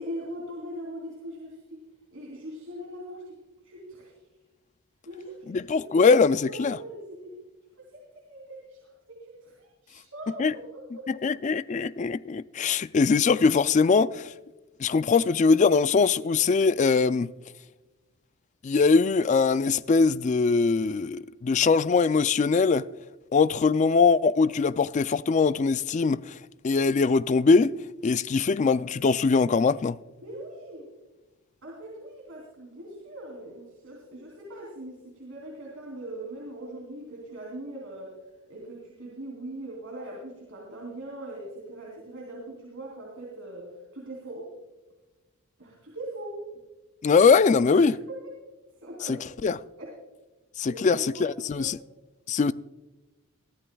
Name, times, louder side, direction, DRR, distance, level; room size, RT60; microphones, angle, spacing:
voice 1, 0.0-1.8 2.1-3.4 3.6-4.1 5.0-7.3 7.8-8.8 9.1-11.1 30.2-30.9 31.6-38.1 38.5-44.5 45.6-46.4 47.7-48.2 48.8-49.2 49.8-49.9 50.6-51.2 51.5-51.7, right 1 dB, 70° right, 3.3 m, -41 dB
voice 2, 5.5-6.8 10.4-10.6 11.1-14.3 14.8-17.3 18.6-22.9 23.3-26.4 26.6-27.8 28.0-30.0 47.0-48.0 49.1-49.2 49.4-49.6 50.6-51.8 52.3-52.5, left 4 dB, 35° left, 0.3 m, -22 dB
22.5 x 13.5 x 2.3 m
head